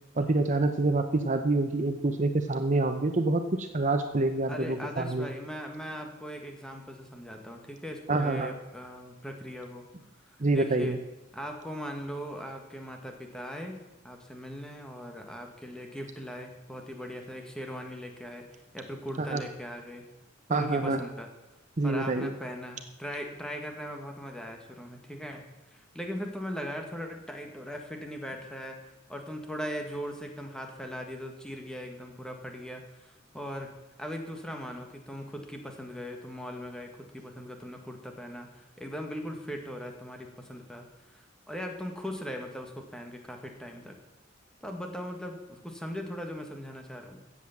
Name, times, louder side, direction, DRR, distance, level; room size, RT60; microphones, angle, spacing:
voice 1, 0.2-5.3 8.1-8.5 10.4-11.0 19.2-19.4 20.5-21.0 21.8-22.3, right 2 dB, 40° right, 7 dB, 0.8 m, -27 dB
voice 2, 4.5-9.8 10.2-11.0 11.3-13.8 14.0-18.5 18.7-20.1 20.5-21.3 21.8-25.4 25.7-28.8 29.1-33.7 34.0-40.8 41.1-44.0 44.6-47.2, equal, 5° left, 3 dB, 1.7 m, -39 dB
15.5 x 8.1 x 7.3 m, 1.0 s
head